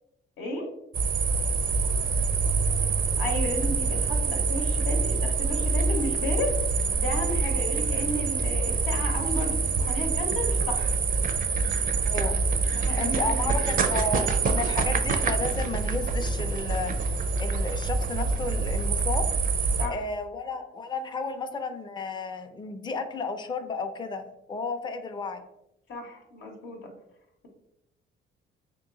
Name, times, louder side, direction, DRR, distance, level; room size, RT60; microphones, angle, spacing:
voice 1, 0.4-0.7 3.2-6.5 6.9-11.0 12.7-14.1 19.8-20.0 25.9-26.9, left 1 dB, 75° left, 1 dB, 0.9 m, -33 dB
sound 1, 0.9-19.9, right 4 dB, 45° right, 0.4 m, -26 dB
voice 2, 12.1-12.4 13.0-17.1 17.4-19.3 19.8-25.4, left 3 dB, 20° left, 7 dB, 0.5 m, -33 dB
3.0 x 2.9 x 3.6 m, 0.85 s
cardioid pair, 90°, 20 cm